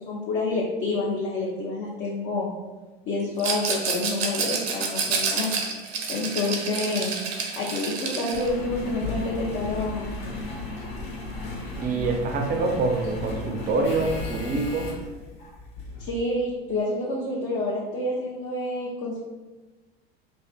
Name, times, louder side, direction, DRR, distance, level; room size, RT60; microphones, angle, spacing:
voice 1, 0.1-2.5 3.1-5.5 6.1-7.2 7.6-10.1 16.0-19.2, left 2 dB, 45° left, -3 dB, 0.5 m, -28 dB
Rattle, 3.4-8.5, right 5 dB, 80° right, 0.6 m, -28 dB
Engine, 8.3-16.2 16.8-16.9, left 2 dB, 70° left, 0.9 m, -35 dB
voice 2, 11.8-14.9, right 3 dB, 30° right, 3 dB, 0.4 m, -25 dB
2.5 x 2.4 x 2.2 m, 1.2 s
hypercardioid pair, 80°, 31 cm